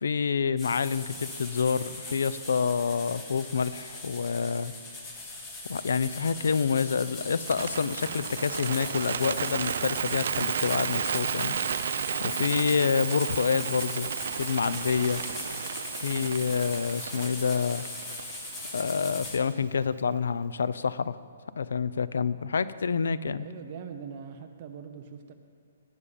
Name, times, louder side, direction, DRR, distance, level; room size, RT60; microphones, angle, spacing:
voice 1, 0.0-4.7 5.7-11.5 12.2-14.1 14.4-15.2 16.0-17.8 18.7-21.2 21.6-23.5, left 6 dB, 75° left, 16 dB, 0.5 m, -27 dB
sound 1, 0.6-19.4, left 2 dB, 10° left, 1.2 m, -40 dB
Bird, 7.4-19.6, right 7 dB, 50° right, 0.4 m, -33 dB
voice 2, 23.4-25.3, right 7 dB, 30° right, 5 dB, 0.9 m, -42 dB
18.5 x 8.4 x 5.3 m, 2.2 s
hypercardioid pair, 175°, 0 cm